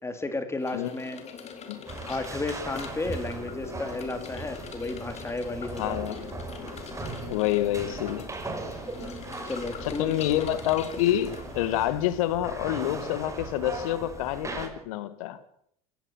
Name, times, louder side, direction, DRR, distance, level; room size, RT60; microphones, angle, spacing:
voice 1, 0.0-1.2 2.1-6.3 8.8-9.2 9.4-10.2, left 3 dB, 15° left, 3.8 m, -33 dB
sound 1, 0.6-11.8, left 6 dB, 35° left, 4.2 m, -43 dB
sound 2, 1.9-14.7, right 3 dB, 15° right, 6.3 m, -39 dB
voice 2, 5.8-6.3 7.3-8.3 9.8-15.4, left 13 dB, 65° left, 2.2 m, -27 dB
28.0 x 16.0 x 5.9 m
hypercardioid pair, 80°, 18 cm